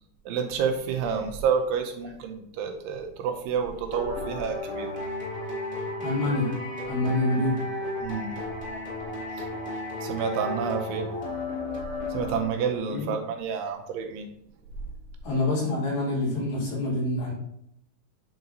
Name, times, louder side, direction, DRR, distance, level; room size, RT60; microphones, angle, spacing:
voice 1, 0.3-4.9 8.0-8.4 9.4-9.5 10.0-11.1 12.1-14.3, right 6 dB, 85° right, 4 dB, 2.6 m, -29 dB
sound 1, 3.9-12.8, left 2 dB, 10° right, 0.4 m, -34 dB
voice 2, 6.0-6.5 6.9-7.6 12.9-13.1 15.2-17.3, left 2 dB, 90° left, -6 dB, 4.8 m, -26 dB
9.2 x 3.9 x 2.7 m, 0.74 s
omnidirectional pair, 4.9 m